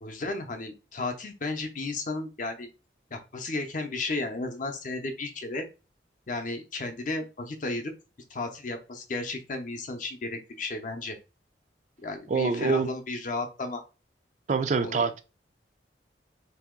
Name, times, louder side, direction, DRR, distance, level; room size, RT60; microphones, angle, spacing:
voice 1, 0.0-2.7 3.1-5.7 6.3-7.9 8.3-11.2 12.0-13.8 14.8-15.1, left 2 dB, 45° left, 0.6 m, -33 dB
voice 2, 12.3-12.9 14.5-15.2, right 5 dB, 40° right, 0.3 m, -25 dB
2.9 x 2.7 x 3.6 m
head